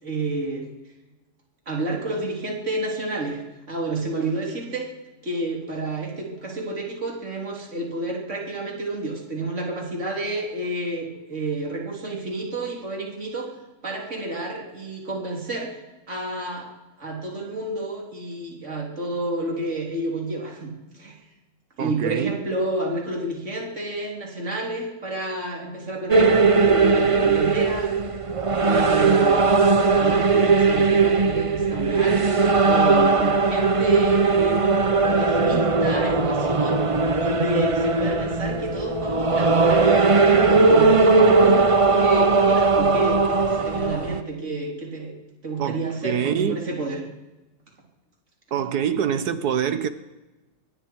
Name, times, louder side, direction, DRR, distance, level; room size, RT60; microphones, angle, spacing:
voice 1, 0.0-0.7 1.7-3.4 3.7-4.9 5.2-13.5 13.8-15.8 16.1-16.7 17.0-21.2 21.8-27.9 28.6-29.4 29.9-32.3 32.6-40.0 40.5-41.6 41.9-45.1 45.4-47.0, right 2 dB, 45° right, 4.2 m, -30 dB
voice 2, 21.8-22.4 45.6-46.6 48.5-49.9, right 8 dB, 80° right, 1.6 m, -25 dB
sound 1, 26.1-44.2, right 4 dB, 30° right, 0.7 m, -19 dB
23.5 x 23.0 x 4.8 m
omnidirectional pair, 1.7 m